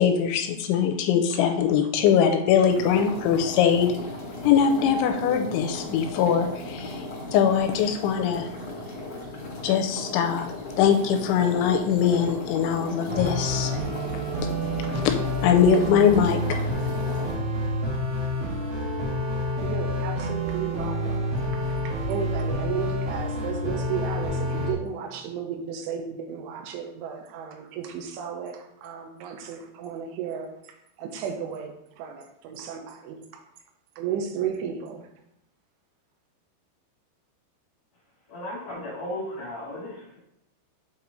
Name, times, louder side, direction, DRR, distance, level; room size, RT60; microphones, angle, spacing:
voice 1, 0.0-3.9 4.4-7.0 7.3-8.5 9.6-13.8 15.4-16.4, left 8 dB, 85° left, 5 dB, 2.9 m, -22 dB
sound 1, 2.7-17.4, left 2 dB, 35° left, 3.0 m, -37 dB
sound 2, 13.1-24.7, equal, 75° right, 1.5 m, -28 dB
voice 2, 19.6-33.4 34.0-35.1, right 7 dB, 90° right, 4 dB, 3.3 m, -34 dB
voice 3, 38.3-40.2, left 1 dB, 55° left, -6 dB, 2.7 m, -35 dB
7.8 x 4.3 x 4.0 m, 0.81 s
omnidirectional pair, 5.4 m